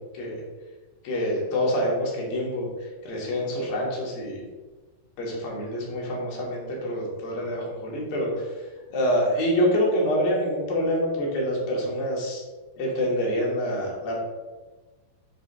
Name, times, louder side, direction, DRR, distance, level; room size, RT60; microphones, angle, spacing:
voice 1, 1.0-2.7 3.0-4.4 5.2-8.5 8.9-12.4 12.8-14.2, equal, 75° left, -2 dB, 3.2 m, -26 dB
6.7 x 2.9 x 5.3 m, 1.2 s
omnidirectional pair, 4.1 m